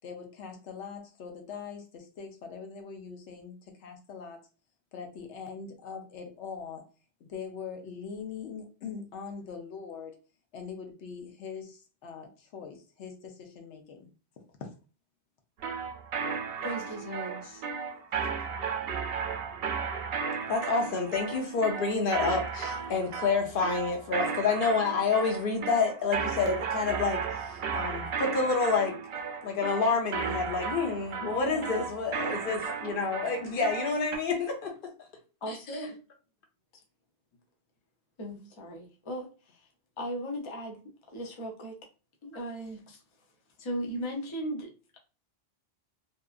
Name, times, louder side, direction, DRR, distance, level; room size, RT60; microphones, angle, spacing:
voice 1, 0.0-4.4 4.9-6.8 7.2-10.2 10.5-14.1 14.6-14.7 31.2-31.7, left 6 dB, 85° left, 1.0 m, -42 dB
sound 1, 15.6-34.2, right 6 dB, 65° right, 0.7 m, -34 dB
voice 2, 16.6-17.6 35.4-36.0 38.2-39.7 40.0-40.8 41.1-41.8 42.2-43.0 43.6-45.0, equal, 35° left, 0.5 m, -37 dB
voice 3, 20.5-29.0 29.4-34.7 35.5-35.6, left 4 dB, 55° left, 0.8 m, -28 dB
2.8 x 2.3 x 2.3 m
omnidirectional pair, 1.1 m